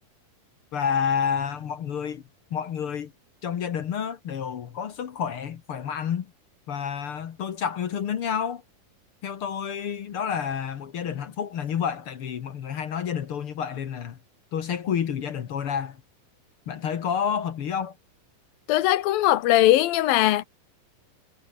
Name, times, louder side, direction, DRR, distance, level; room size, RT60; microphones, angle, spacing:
voice 1, 0.7-2.2 2.5-3.1 3.4-6.3 6.7-8.6 9.2-14.2 14.5-16.0 16.7-17.9, left 7 dB, 55° left, 1.6 m, -29 dB
voice 2, 18.7-20.4, left 14 dB, 80° left, 2.8 m, -20 dB
omnidirectional pair, 4.1 m